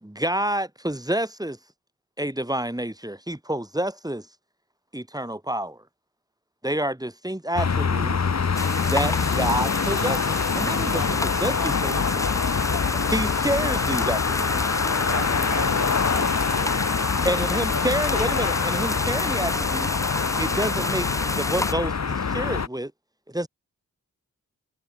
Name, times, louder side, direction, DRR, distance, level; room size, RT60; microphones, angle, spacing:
voice 1, 0.0-1.6 2.2-4.3 4.9-5.8 6.6-8.2 8.8-11.0 11.4-12.0 13.1-14.8 17.2-19.9 20.4-21.1 21.4-22.9 23.3-23.5, right 1 dB, 10° right, 2.8 m, -28 dB
sound 1, 7.5-22.7, left 5 dB, 50° left, 1.1 m, -25 dB
sound 2, 8.5-21.7, left 2 dB, 10° left, 0.4 m, -31 dB
voice 2, 11.5-13.3 13.6-13.9 14.9-15.9 17.5-17.9, left 5 dB, 80° left, 3.3 m, -37 dB
voice 3, 15.1-16.8 17.2-18.1, right 7 dB, 85° right, 1.4 m, -38 dB
cardioid pair, 45°, 34 cm